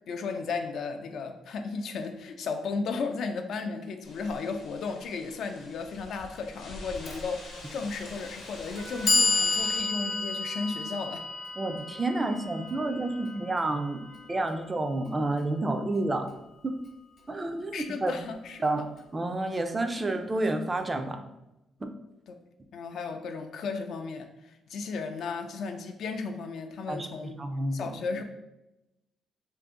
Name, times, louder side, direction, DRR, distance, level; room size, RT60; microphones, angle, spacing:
voice 1, 0.1-11.3 17.7-18.9 22.7-27.4 27.7-28.2, left 4 dB, 70° left, 6 dB, 0.3 m, -35 dB
sound 1, 4.0-9.8, left 2 dB, 85° left, 0.8 m, -46 dB
Clock, 7.1-7.2 8.1-8.2 8.7-14.8, left 3 dB, 55° left, 0.8 m, -30 dB
Wind instrument woodwind instrument, 8.8-14.5, right 1 dB, 90° right, 0.7 m, -48 dB
voice 2, 11.6-16.3 16.6-16.8 17.3-18.3 18.6-18.8 19.1-21.2 21.8-21.9 26.9-27.1 27.4-27.9, right 2 dB, 25° right, 6 dB, 0.3 m, -30 dB
2.6 x 2.5 x 3.6 m, 0.94 s
cardioid pair, 90°, 0 cm